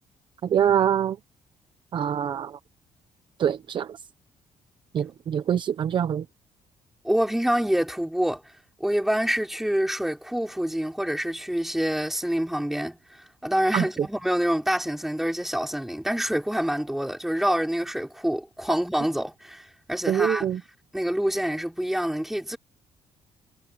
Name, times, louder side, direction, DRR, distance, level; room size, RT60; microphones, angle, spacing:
voice 1, 0.4-1.2 1.9-2.6 3.4-4.0 4.9-6.2 13.7-13.9 20.1-20.6, right 9 dB, 45° right, 0.7 m, -24 dB
voice 2, 7.0-8.4 8.8-13.0 13.4-20.5 20.9-22.6, equal, ahead, 5.4 m, -26 dB
cardioid pair, 165°, 12 cm